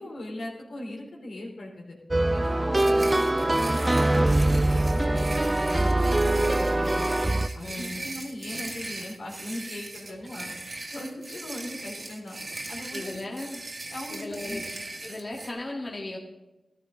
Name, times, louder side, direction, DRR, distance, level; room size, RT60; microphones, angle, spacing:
voice 1, 0.0-2.0 2.3-7.1 7.5-10.5 10.9-13.1 13.9-14.6, left 1 dB, 85° left, -2 dB, 3.6 m, -39 dB
sound 1, 2.1-7.5, right 1 dB, 25° right, 0.5 m, -23 dB
sound 2, 2.7-15.5, right 2 dB, 50° right, 2.2 m, -39 dB
voice 2, 2.8-3.1 7.6-8.0 12.9-13.6 14.1-14.6 15.0-16.2, left 2 dB, 45° left, -1 dB, 1.8 m, -36 dB
14.0 x 12.0 x 3.9 m, 1.1 s
cardioid pair, 50°, 0 cm